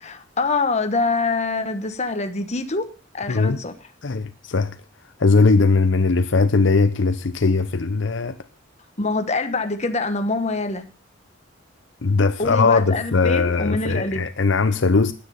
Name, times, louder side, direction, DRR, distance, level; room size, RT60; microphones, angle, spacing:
voice 1, 0.0-2.9 3.1-3.7 9.0-10.9 12.4-14.2, left 3 dB, 35° left, 1.1 m, -25 dB
voice 2, 3.3-3.6 4.0-4.8 5.2-8.4 12.0-15.1, left 4 dB, 65° left, 0.7 m, -19 dB
9.9 x 9.7 x 6.9 m
head